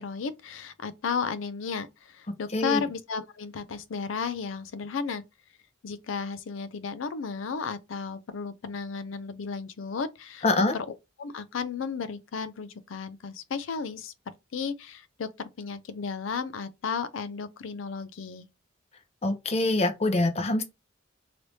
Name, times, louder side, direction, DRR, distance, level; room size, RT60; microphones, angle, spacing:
voice 1, 0.0-5.2 5.8-10.4 10.7-14.1 14.5-15.3 15.6-18.5, left 5 dB, 80° left, 0.4 m, -34 dB
voice 2, 2.5-2.8 10.4-10.8 19.2-20.6, left 2 dB, 35° left, 0.6 m, -24 dB
3.2 x 3.1 x 2.7 m
head